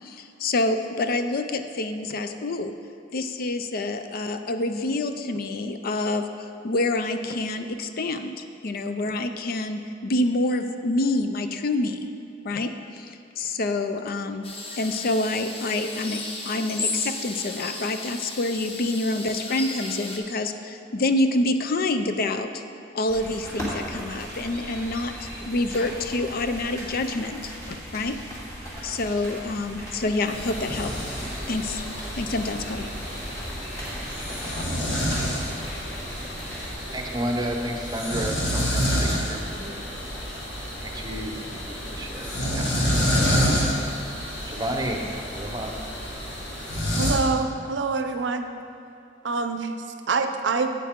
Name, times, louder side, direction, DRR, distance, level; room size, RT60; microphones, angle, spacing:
voice 1, 0.0-2.7 3.1-12.1 12.4-14.4 14.8-22.6 22.9-28.2 28.8-30.9 31.5-31.9 32.2-32.9, left 2 dB, 55° left, 8 dB, 0.5 m, -27 dB
sound 1, 14.4-20.2, left 3 dB, 35° left, 0.9 m, -34 dB
sound 2, 23.1-36.7, equal, 15° left, 2.2 m, -38 dB
sound 3, 30.3-47.1, equal, 80° left, 1.9 m, -28 dB
voice 2, 36.9-39.8 40.8-41.6 41.9-42.7 44.5-45.0 45.3-45.8, right 1 dB, 20° right, 2 dB, 0.8 m, -31 dB
voice 3, 47.0-48.5 49.2-49.7 50.1-50.7, right 4 dB, 75° right, 7 dB, 0.5 m, -25 dB
9.2 x 8.2 x 3.7 m, 2.7 s
head